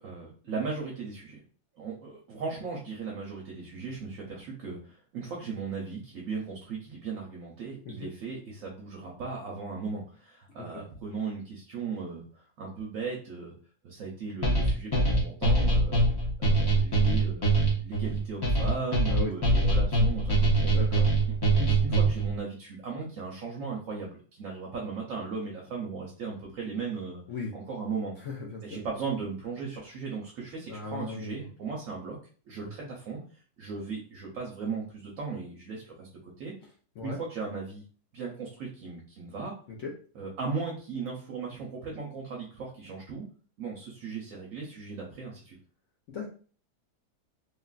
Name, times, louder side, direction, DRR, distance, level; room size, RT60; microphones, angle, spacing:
voice 1, 0.0-1.4 1.8-13.5 13.8-16.1 16.4-20.3 20.6-20.7 21.6-27.2 27.5-28.1 28.6-32.2 32.5-33.2 33.6-36.5 37.0-37.8 38.1-39.5 40.1-43.2 43.6-45.6, right 4 dB, 65° right, -2 dB, 1.0 m, -37 dB
sound 1, 14.4-22.3, right 2 dB, 40° left, 0.3 m, -23 dB
voice 2, 20.7-21.0 27.3-27.5 28.2-28.8 30.7-31.4 32.6-32.7 37.0-37.2 39.8-39.9 46.1-46.3, left 4 dB, 65° left, -2 dB, 0.7 m, -37 dB
3.1 x 2.4 x 2.3 m, 0.41 s
omnidirectional pair, 1.7 m